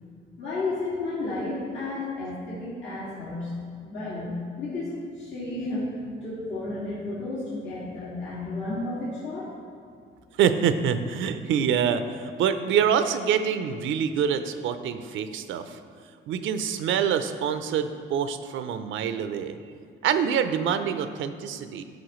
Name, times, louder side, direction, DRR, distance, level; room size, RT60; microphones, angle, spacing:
voice 1, 0.4-3.6 3.8-5.9 6.2-9.5, left 2 dB, 70° left, -9 dB, 2.2 m, -32 dB
voice 2, 10.4-15.8 16.3-19.6 20.0-21.8, right 8 dB, 80° right, 10 dB, 0.5 m, -25 dB
11.5 x 6.0 x 3.1 m, 2.3 s
cardioid pair, 90°, 20 cm